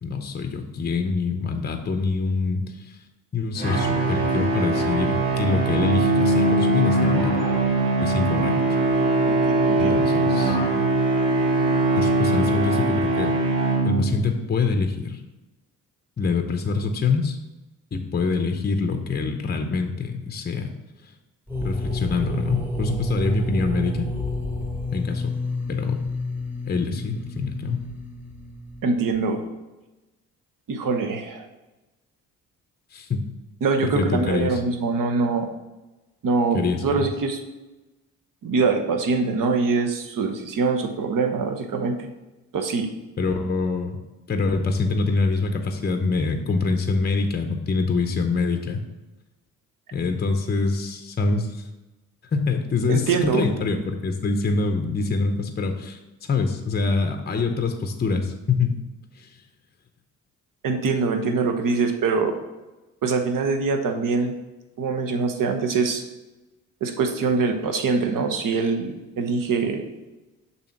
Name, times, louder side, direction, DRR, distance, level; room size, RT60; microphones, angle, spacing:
voice 1, 0.0-3.0 3.3-7.4 8.0-8.6 9.8-10.6 12.0-13.4 13.8-15.2 16.2-17.4 17.9-20.7 21.0-21.1 21.6-24.1 24.9-25.4 25.7-26.0 26.7-27.9 32.9-33.3 33.8-34.6 36.5-37.1 43.2-44.0 44.3-48.8 49.9-51.6 52.3-58.8 59.2-59.3, left 4 dB, 25° left, 6 dB, 0.7 m, -25 dB
sound 1, 3.6-14.3, right 2 dB, 75° right, 2.1 m, -21 dB
voice 2, 9.3-10.1 28.8-29.4 30.7-31.5 33.6-35.5 36.2-37.4 38.4-42.1 42.5-42.9 52.9-53.4 60.6-62.3 63.0-64.3 64.8-66.0 66.8-69.8, right 4 dB, 50° right, 4 dB, 1.0 m, -24 dB
sound 2, 21.5-29.2, left 1 dB, 5° right, 1.1 m, -29 dB
6.8 x 2.8 x 5.8 m, 1.1 s
hypercardioid pair, 45°, 42 cm